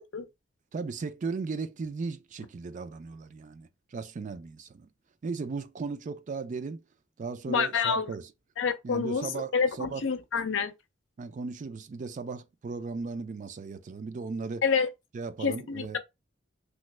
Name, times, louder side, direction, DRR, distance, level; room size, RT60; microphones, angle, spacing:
voice 1, 0.7-4.9 5.2-6.8 7.2-8.3 8.8-10.1 11.2-14.6 15.1-16.0, right 4 dB, 40° right, 0.4 m, -36 dB
voice 2, 7.5-8.1 8.6-10.7 14.6-14.9 15.4-16.0, left 6 dB, 80° left, 0.6 m, -28 dB
3.1 x 2.1 x 3.2 m
head